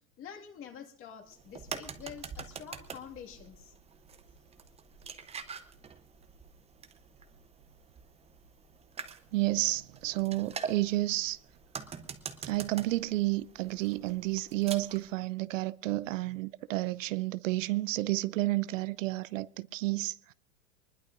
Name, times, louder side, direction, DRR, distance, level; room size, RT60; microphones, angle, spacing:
voice 1, 0.2-3.7, left 8 dB, 30° left, 2.0 m, -47 dB
sound 1, 1.3-15.1, right 6 dB, 15° right, 0.8 m, -45 dB
voice 2, 9.3-11.4 12.4-20.3, right 18 dB, 65° right, 0.6 m, -31 dB
22.5 x 20.0 x 2.6 m
hypercardioid pair, 120°, 42 cm